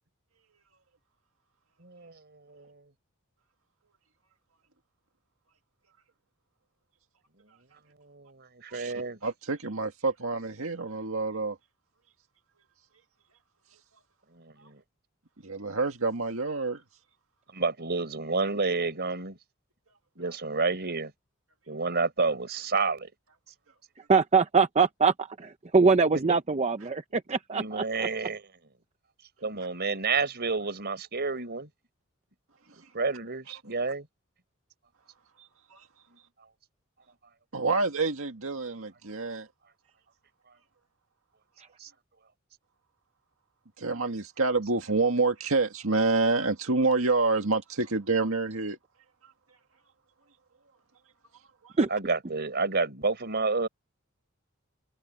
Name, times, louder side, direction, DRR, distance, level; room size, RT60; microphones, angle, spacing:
voice 1, 1.8-2.8 8.0-9.2 14.3-14.8 17.5-19.4 20.2-21.1 21.7-23.1 26.1-26.4 27.5-28.5 29.4-31.7 32.9-34.1 41.8-41.9 51.9-53.7, right 4 dB, 50° right, 4.5 m, -30 dB
voice 2, 9.2-11.6 15.4-16.8 35.7-35.8 37.5-39.5 43.8-48.8 51.6-51.7, right 3 dB, 75° right, 2.0 m, -27 dB
voice 3, 24.1-27.8 51.8-51.9, right 4 dB, 30° right, 0.6 m, -23 dB
head